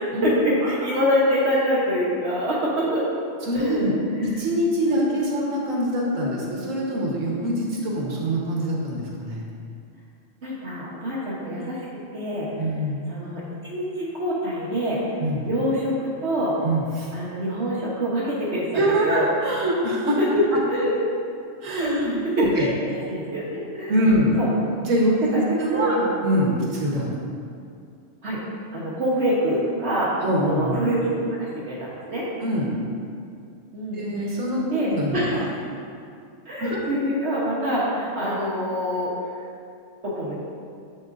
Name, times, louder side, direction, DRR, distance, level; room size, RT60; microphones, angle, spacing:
voice 1, 0.0-3.0 3.5-3.9 4.2-4.3 4.9-5.2 10.4-11.8 12.1-12.5 13.1-15.0 15.4-16.5 17.1-19.3 20.7-20.9 21.7-22.7 23.1-24.0 24.4-24.5 25.3-25.4 25.7-26.0 26.6-26.7 28.2-28.4 28.7-30.1 30.4-32.3 33.7-34.3 34.7-35.5 36.5-39.1 40.0-40.3, equal, 60° right, -8 dB, 1.3 m, -25 dB
voice 2, 3.4-3.9 4.2-9.4 12.6-13.1 15.2-15.5 16.6-17.1 18.7-20.2 21.6-22.7 23.9-24.4 24.8-27.1 30.2-30.8 32.4-32.7 33.9-35.5 36.6-36.8, equal, 75° right, -4 dB, 1.6 m, -24 dB
8.1 x 6.8 x 2.6 m, 2.3 s
omnidirectional pair, 1.4 m